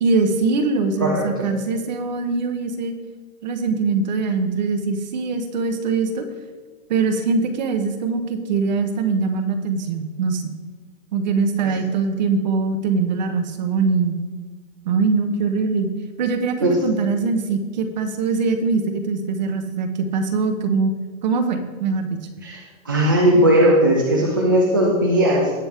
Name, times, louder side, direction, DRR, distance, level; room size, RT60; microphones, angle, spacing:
voice 1, 0.0-2.9 3.4-6.2 6.9-10.5 11.1-14.2 14.8-15.9 16.2-20.9 21.2-22.2, right 4 dB, 30° right, 8 dB, 0.9 m, -22 dB
voice 2, 22.8-25.5, right 1 dB, 15° right, -3 dB, 0.4 m, -17 dB
18.0 x 6.1 x 3.5 m, 1.3 s
hypercardioid pair, 170°, 41 cm